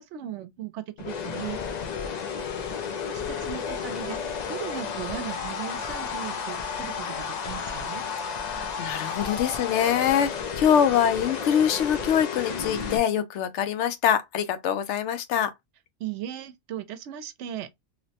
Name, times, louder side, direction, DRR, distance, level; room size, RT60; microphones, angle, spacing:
voice 1, 0.0-1.6 3.0-8.0 16.0-17.7, right 10 dB, 85° right, 0.9 m, -37 dB
sound 1, 1.0-13.0, left 6 dB, 60° left, 0.4 m, -32 dB
voice 2, 8.4-15.5, left 9 dB, 85° left, 0.9 m, -24 dB
3.0 x 2.0 x 2.7 m
omnidirectional pair, 1.2 m